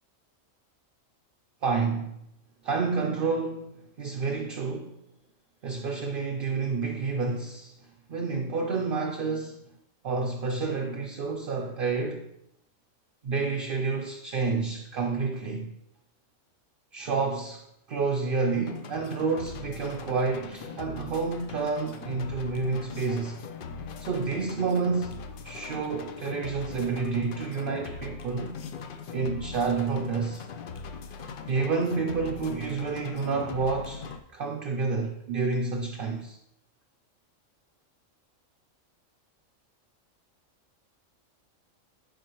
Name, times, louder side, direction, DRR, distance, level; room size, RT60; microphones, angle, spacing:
voice 1, 1.6-2.2 2.6-5.0 5.6-7.8 8.1-9.7 10.0-12.3 13.2-15.8 16.9-23.4 24.0-25.2 25.4-28.5 29.1-30.4 31.5-34.1 34.3-36.4, right 4 dB, 55° right, 0.7 m, -29 dB
sound 1, 18.7-34.2, left 5 dB, 60° left, 0.5 m, -41 dB
9.1 x 4.4 x 3.0 m
omnidirectional pair, 1.4 m